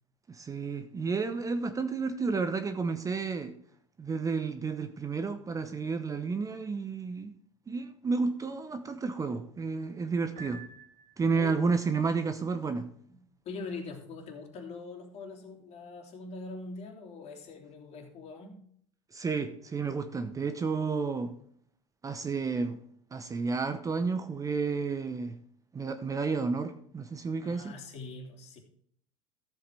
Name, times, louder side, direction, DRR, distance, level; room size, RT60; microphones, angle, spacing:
voice 1, 0.3-3.6 4.0-7.3 7.7-10.6 11.2-12.9 19.1-21.4 22.0-22.8 23.1-25.4 25.7-27.7, right 4 dB, 20° right, 0.8 m, -31 dB
Piano, 10.4-11.6, right 4 dB, 45° right, 3.3 m, -49 dB
voice 2, 13.4-18.6 27.4-28.6, left 3 dB, 40° left, 2.9 m, -43 dB
14.0 x 7.9 x 3.4 m
hypercardioid pair, 90°, 16 cm